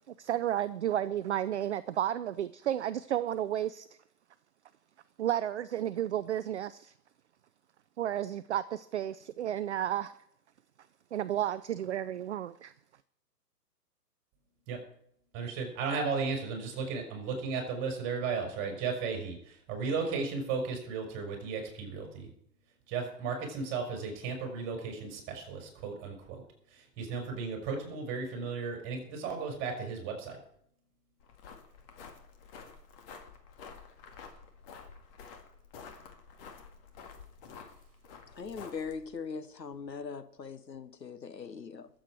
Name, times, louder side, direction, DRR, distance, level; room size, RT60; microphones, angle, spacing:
voice 1, 0.1-3.9 5.2-6.9 8.0-10.1 11.1-12.7, right 11 dB, 45° right, 14 dB, 0.5 m, -32 dB
voice 2, 15.3-22.3 22.9-26.4 26.7-30.4, right 5 dB, 25° right, 3 dB, 4.5 m, -35 dB
sound 1, 31.2-39.1, left 5 dB, 35° left, 2.0 m, -50 dB
voice 3, 38.4-41.9, left 5 dB, 90° left, 12 dB, 1.2 m, -40 dB
22.0 x 7.8 x 4.6 m, 0.69 s
figure-of-eight pair, 125°, 49 cm